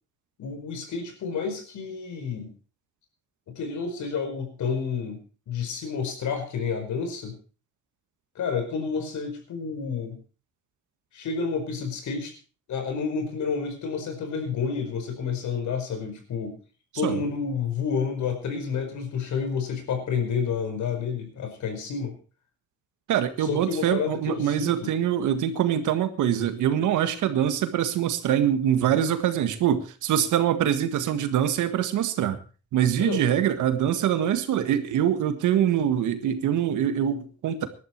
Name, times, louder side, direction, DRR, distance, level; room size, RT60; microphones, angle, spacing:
voice 1, 0.4-2.5 3.5-7.4 8.3-10.2 11.1-12.3 12.7-16.6 16.9-22.2 23.4-24.9 33.0-33.4, left 5 dB, 75° left, 6 dB, 5.1 m, -30 dB
voice 2, 23.1-32.4 32.7-37.7, right 10 dB, 85° right, 10 dB, 1.8 m, -24 dB
18.5 x 12.0 x 4.6 m, 0.36 s
cardioid pair, 90°, 30 cm